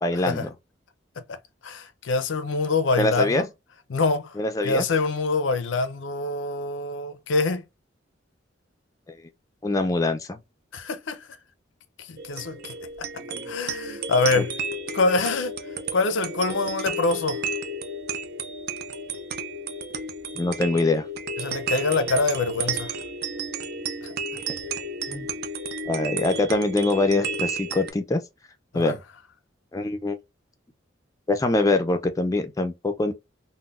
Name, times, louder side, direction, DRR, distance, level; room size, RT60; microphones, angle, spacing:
voice 1, 0.0-0.5 3.0-3.4 4.4-4.8 9.6-10.4 13.3-13.4 14.4-14.5 20.4-21.0 24.3-24.4 25.1-25.3 25.9-28.2 28.7-29.0 29.7-30.2 31.3-33.1, left 2 dB, 20° left, 0.4 m, -24 dB
voice 2, 1.6-3.5 3.9-4.4 4.6-7.6 10.7-11.2 12.1-12.7 13.5-14.5 14.9-15.5 15.9-17.4 21.4-22.9 24.0-24.1 28.7-28.9, left 3 dB, 80° left, 0.5 m, -25 dB
sound 1, 12.2-27.9, right 3 dB, 55° right, 0.4 m, -32 dB
3.7 x 2.1 x 2.4 m
head